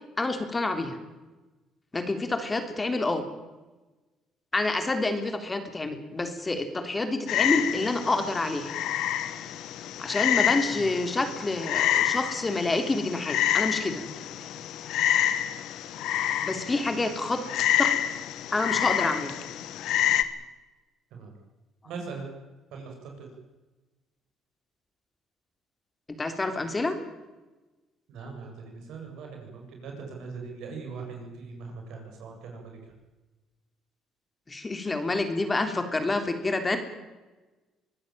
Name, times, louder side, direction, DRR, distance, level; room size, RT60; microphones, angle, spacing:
voice 1, 0.2-1.0 1.9-3.2 4.5-8.8 10.0-14.0 16.4-17.4 17.8-17.9 18.5-19.4 26.2-26.9 34.5-36.8, left 2 dB, 20° left, 7 dB, 3.2 m, -28 dB
Frog, 7.3-20.2, left 11 dB, 75° left, 1.5 m, -28 dB
voice 2, 21.8-22.3 22.7-23.3 28.1-32.8, right 4 dB, 75° right, 2 dB, 7.6 m, -40 dB
24.0 x 15.5 x 9.0 m, 1.2 s
cardioid pair, 95°, 0 cm